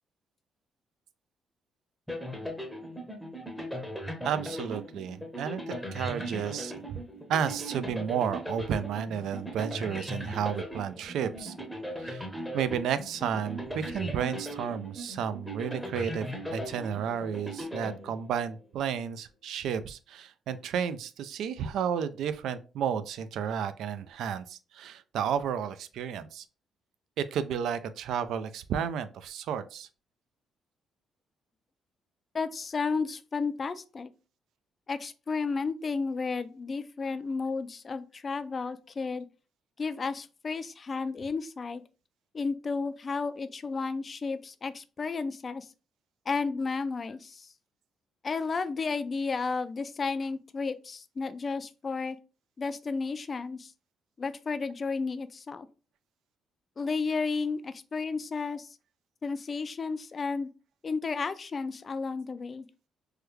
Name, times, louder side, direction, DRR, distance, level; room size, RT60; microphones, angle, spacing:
sound 1, 2.1-18.6, equal, ahead, 0.7 m, -38 dB
voice 1, 4.2-7.0 7.3-11.5 12.0-12.3 12.5-16.3 16.5-26.4 27.2-29.9, right 8 dB, 80° right, 12 dB, 0.3 m, -32 dB
voice 2, 32.3-34.1 34.9-39.2 39.8-41.8 42.3-45.7 46.3-47.5 48.2-52.2 52.6-53.7 54.2-55.7 56.8-58.7 59.2-60.5 60.8-62.7, left 4 dB, 40° left, 12 dB, 0.3 m, -32 dB
3.2 x 2.2 x 3.2 m, 0.34 s
cardioid pair, 90°, 0 cm